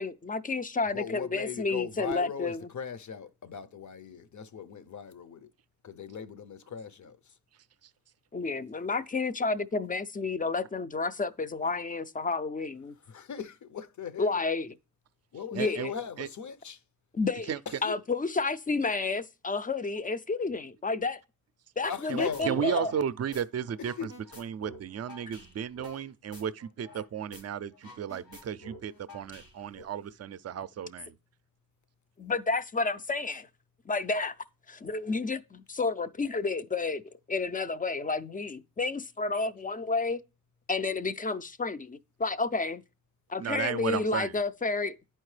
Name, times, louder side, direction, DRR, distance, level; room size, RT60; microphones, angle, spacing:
voice 1, 0.0-2.7 8.3-12.9 14.2-14.7 15.5-15.9 17.1-17.5 17.8-21.2 21.8-22.9 32.2-33.5 33.9-34.3 34.7-37.0 37.3-40.2 40.7-42.8 43.3-45.0, left 3 dB, 25° left, 0.4 m, -30 dB
voice 2, 0.8-5.5 5.8-7.2 13.1-14.4 15.3-16.8 17.7-17.9 21.9-22.9 23.8-24.1, left 6 dB, 55° left, 0.7 m, -38 dB
voice 3, 15.5-15.9 16.2-16.3 17.5-17.6 22.1-24.1 24.4-31.2 43.4-44.4, right 8 dB, 50° right, 0.4 m, -34 dB
sound 1, 21.8-22.0 22.3-23.4 23.7-27.1 27.3-27.4 27.7-29.8, left 1 dB, 85° left, 2.0 m, -48 dB
10.5 x 4.4 x 3.2 m
cardioid pair, 60°, 35 cm